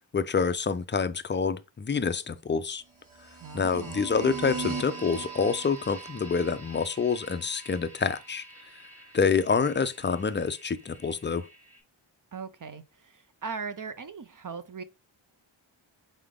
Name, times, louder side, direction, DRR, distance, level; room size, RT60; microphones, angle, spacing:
voice 1, 0.1-2.8 3.5-8.4 9.1-11.5, left 5 dB, 25° left, 0.3 m, -27 dB
sound 1, 3.0-11.8, right 4 dB, 75° right, 1.6 m, -41 dB
voice 2, 3.4-4.3 12.3-14.8, right 5 dB, 45° right, 0.5 m, -39 dB
3.8 x 3.5 x 3.6 m
wide cardioid pair, 65°, 48 cm